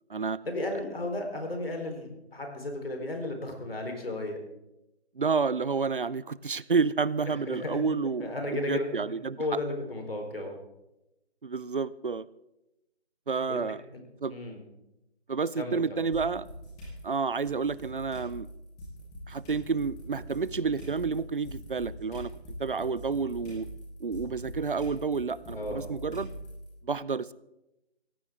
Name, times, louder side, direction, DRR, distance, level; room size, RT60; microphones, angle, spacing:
voice 1, 0.4-4.4 7.3-7.8 8.2-8.9 9.4-10.6 13.5-13.6 13.9-14.0 14.3-14.6 15.6-16.0 25.5-25.8, left 2 dB, 60° left, 3 dB, 4.0 m, -34 dB
voice 2, 5.2-9.4 11.4-12.3 13.3-13.8 14.2-14.4 15.3-16.5 17.0-18.5 19.3-22.3 22.6-23.7 24.0-26.3 26.8-27.3, right 5 dB, 50° right, 19 dB, 0.6 m, -30 dB
sound 1, 16.1-17.0 17.4-26.6, right 1 dB, 5° left, 1.2 m, -43 dB
18.0 x 15.5 x 3.6 m, 0.92 s
figure-of-eight pair, 165°, 33 cm